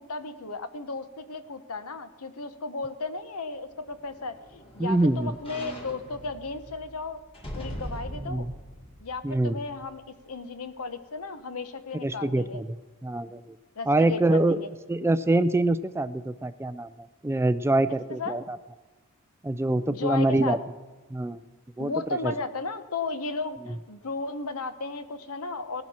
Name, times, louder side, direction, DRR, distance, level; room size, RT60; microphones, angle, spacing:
voice 1, 0.0-7.2 7.5-8.5 9.0-12.6 13.8-14.7 17.9-18.4 19.9-20.6 21.8-25.8, left 3 dB, 75° left, 10 dB, 1.0 m, -35 dB
sound 1, 3.7-10.1 10.5-10.6, equal, 25° left, 2.1 m, -42 dB
voice 2, 4.8-5.4 8.2-8.5 9.2-9.6 12.0-12.7 13.0-13.6 13.9-14.6 14.9-16.9 17.2-18.6 19.4-20.6 21.1-21.4 21.8-21.9 22.2-22.3, right 2 dB, 10° right, 13 dB, 0.3 m, -25 dB
17.5 x 12.0 x 4.3 m, 1.3 s
head